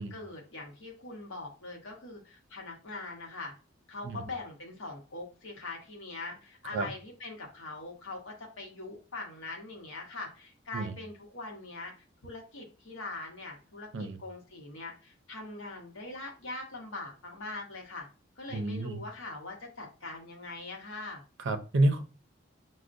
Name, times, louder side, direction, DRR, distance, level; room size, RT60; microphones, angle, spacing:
voice 1, 0.0-3.5 3.9-11.9 12.2-18.1 18.4-21.2, left 2 dB, 70° left, 0 dB, 0.8 m, -42 dB
voice 2, 18.5-19.0 21.4-22.0, right 2 dB, 65° right, 7 dB, 0.5 m, -29 dB
6.1 x 2.1 x 2.5 m, 0.34 s
head